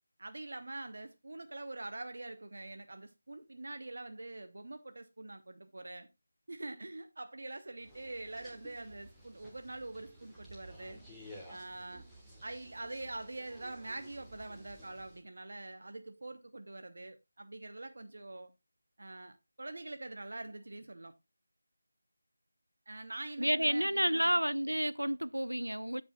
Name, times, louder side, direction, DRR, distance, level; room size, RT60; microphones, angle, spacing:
voice 1, 0.2-6.1 6.5-11.0 11.5-12.0 12.4-18.5 19.0-21.1 22.9-24.4, right 2 dB, 55° right, 0.7 m, -45 dB
sound 1, 7.8-15.2, equal, ahead, 1.3 m, -54 dB
voice 2, 23.4-26.0, equal, 85° right, 0.4 m, -30 dB
14.5 x 5.0 x 2.3 m
figure-of-eight pair, 165°, 0 cm